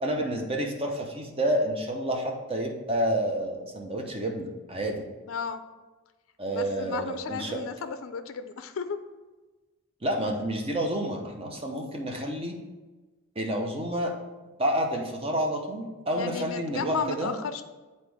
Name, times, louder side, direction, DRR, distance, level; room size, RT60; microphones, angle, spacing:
voice 1, 0.0-5.0 6.4-7.6 10.0-12.5 13.4-14.1 14.6-17.3, right 1 dB, 25° right, 1 dB, 0.8 m, -29 dB
voice 2, 5.3-5.6 6.5-9.0 13.6-13.7 16.1-17.6, left 5 dB, 65° left, 9 dB, 0.4 m, -34 dB
8.2 x 4.1 x 3.4 m, 1.2 s
head